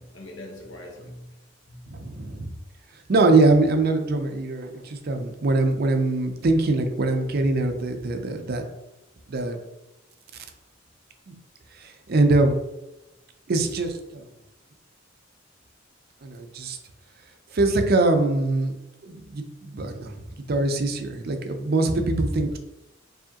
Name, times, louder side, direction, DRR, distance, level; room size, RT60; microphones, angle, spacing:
voice 1, 0.0-1.3 1.7-2.1 21.8-22.0, left 1 dB, 65° left, 0 dB, 0.9 m, -42 dB
voice 2, 1.9-2.5 3.1-8.6 9.3-9.6 11.3-11.4 11.8-12.6 13.5-14.3 16.2-16.8 17.5-18.8 19.0-20.1 20.5-22.6, right 2 dB, 50° right, 6 dB, 0.5 m, -23 dB
4.7 x 2.8 x 2.8 m, 0.95 s
head